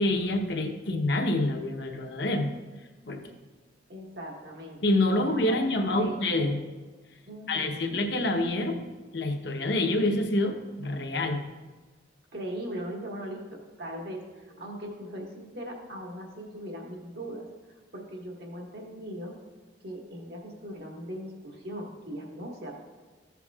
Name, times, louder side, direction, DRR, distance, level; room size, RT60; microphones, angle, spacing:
voice 1, 0.0-2.5 3.0-3.3 4.8-6.6 7.5-8.8 9.1-11.4, left 1 dB, 60° left, 3 dB, 0.9 m, -27 dB
voice 2, 3.9-4.8 5.1-6.5 7.3-8.0 12.3-17.5 17.9-19.4 19.8-22.7, equal, 55° right, 0 dB, 1.7 m, -39 dB
14.5 x 7.0 x 2.4 m, 1.3 s
head